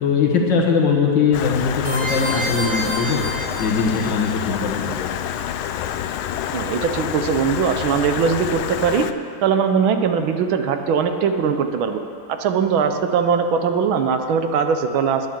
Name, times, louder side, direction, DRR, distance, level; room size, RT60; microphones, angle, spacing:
voice 1, 0.0-3.2 3.6-5.1, left 5 dB, 65° left, 0 dB, 2.0 m, -20 dB
Stream, 1.3-9.1, left 10 dB, 80° left, 1.4 m, -27 dB
sound 1, 1.8-4.2, equal, 40° right, 3.8 m, -28 dB
voice 2, 6.5-9.0 9.4-12.0 12.3-15.3, right 6 dB, 80° right, 7 dB, 1.6 m, -20 dB
10.0 x 9.9 x 7.3 m, 2.6 s
omnidirectional pair, 2.3 m